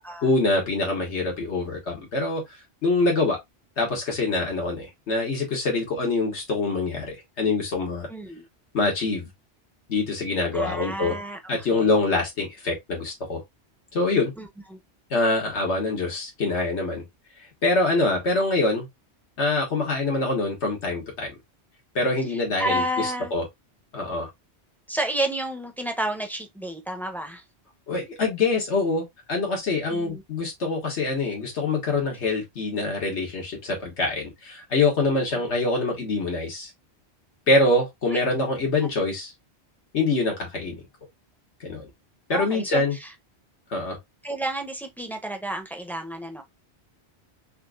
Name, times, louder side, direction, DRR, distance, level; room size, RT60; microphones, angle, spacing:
voice 1, 0.2-2.4 2.8-3.4 3.8-8.1 8.7-9.3 9.9-11.2 11.5-13.4 13.9-14.3 15.1-17.0 17.6-18.9 19.4-21.3 22.0-23.4 23.9-24.3 27.9-36.7 37.5-39.3 39.9-40.8 41.6-41.9 42.3-43.0 43.7-44.0, left 3 dB, 85° left, 1.8 m, -25 dB
voice 2, 8.1-8.4 10.5-12.0 14.4-14.8 22.3-23.3 24.9-27.4 29.9-30.2 35.6-35.7 42.3-43.1 44.2-46.4, right 1 dB, ahead, 0.6 m, -31 dB
5.6 x 2.6 x 2.3 m
omnidirectional pair, 1.1 m